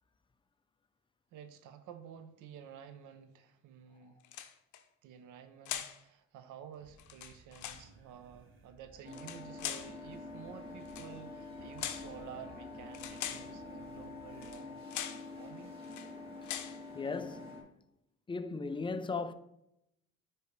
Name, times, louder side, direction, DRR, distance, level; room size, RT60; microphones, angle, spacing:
voice 1, 1.3-4.2 5.0-14.8 15.4-15.8, right 8 dB, 80° right, 0.7 m, -51 dB
sound 1, 4.2-4.8 5.6-6.0 7.0-7.9 9.1-9.9 10.8-11.1 11.8-12.1 12.9-13.5 14.4-14.6 14.9-15.3 15.8-16.1 16.4-16.8, left 11 dB, 75° left, 0.6 m, -41 dB
sound 2, 6.8-14.6, right 3 dB, 40° right, 0.9 m, -60 dB
sound 3, 9.0-17.6, left 3 dB, 20° right, 2.3 m, -47 dB
voice 2, 16.4-17.6 18.3-19.3, left 4 dB, 15° left, 0.4 m, -38 dB
9.4 x 3.2 x 3.2 m
cardioid pair, 90°, 30 cm